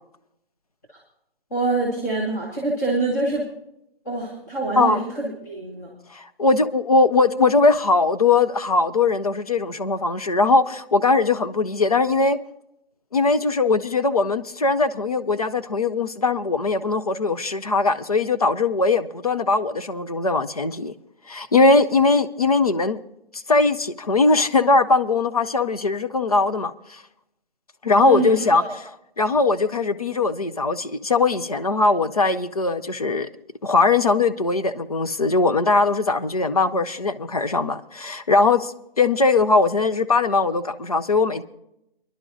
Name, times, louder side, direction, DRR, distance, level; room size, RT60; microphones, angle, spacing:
voice 1, 1.5-3.5 4.0-6.0 28.0-28.7, right 3 dB, 15° left, -6 dB, 1.4 m, -25 dB
voice 2, 4.8-5.1 6.1-12.4 13.1-20.9 21.3-23.0 23.3-27.0 27.8-33.3 33.6-41.4, left 3 dB, 40° left, 11 dB, 0.5 m, -20 dB
26.0 x 11.0 x 2.6 m, 0.81 s
hypercardioid pair, 175°, 30 cm